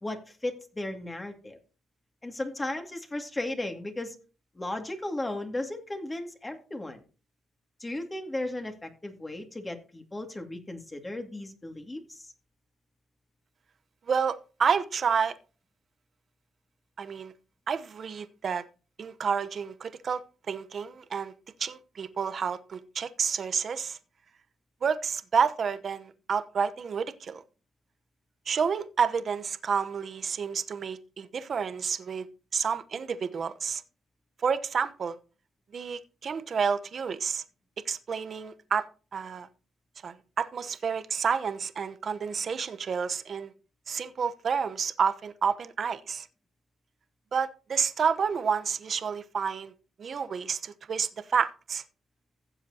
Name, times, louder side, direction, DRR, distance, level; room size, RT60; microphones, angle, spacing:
voice 1, 0.0-1.6 2.2-4.2 4.6-7.0 7.8-12.3, left 1 dB, 20° left, 2.3 m, -35 dB
voice 2, 14.1-15.3 17.0-17.3 17.7-18.6 19.0-20.2 20.5-21.3 21.6-24.0 24.8-27.4 28.5-32.3 32.5-33.8 34.4-35.2 35.7-37.4 37.9-38.9 39.1-39.5 40.0-43.5 43.9-46.3 47.3-49.7 50.0-51.8, right 6 dB, 50° right, 0.9 m, -29 dB
16.0 x 7.4 x 2.8 m
cardioid pair, 90°, 0 cm